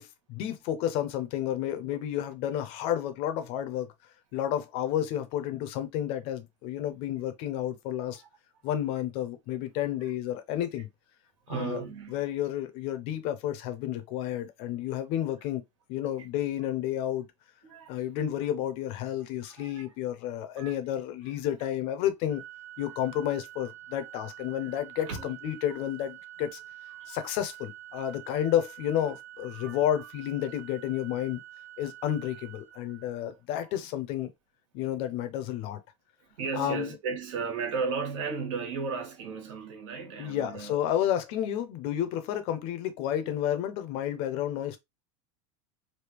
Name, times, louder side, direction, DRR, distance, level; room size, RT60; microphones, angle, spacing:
voice 1, 0.0-3.9 4.3-8.2 8.6-10.9 11.5-11.8 12.1-15.6 15.9-17.3 17.9-22.4 22.8-26.6 27.1-31.4 31.8-34.3 34.7-35.8 36.6-36.9 40.2-44.8, left 11 dB, 40° left, 0.5 m, -31 dB
voice 2, 11.5-12.1 17.6-17.9 19.4-19.9 20.6-20.7 24.6-24.7 25.1-25.4 26.9-27.1 27.9-28.0 29.5-29.8 33.2-33.3 36.4-40.8, right 5 dB, 85° right, 1.7 m, -35 dB
Organ, 22.3-33.4, right 13 dB, 40° right, 1.0 m, -47 dB
3.4 x 2.7 x 2.9 m
supercardioid pair, 180°, 16 cm